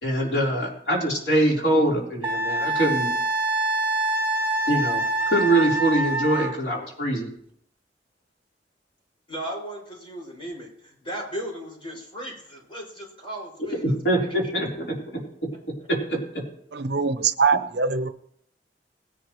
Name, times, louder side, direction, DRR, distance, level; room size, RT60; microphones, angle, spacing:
voice 1, 0.0-3.1 4.7-7.3 13.8-14.9 16.1-16.2, right 1 dB, 70° left, 3.9 m, -23 dB
Wind instrument woodwind instrument, 2.2-6.6, right 2 dB, 10° right, 1.0 m, -25 dB
voice 2, 9.3-13.8 14.1-14.3, right 1 dB, 30° left, 6.0 m, -36 dB
voice 3, 16.7-18.1, right 5 dB, 70° right, 0.7 m, -22 dB
20.0 x 11.0 x 3.1 m
head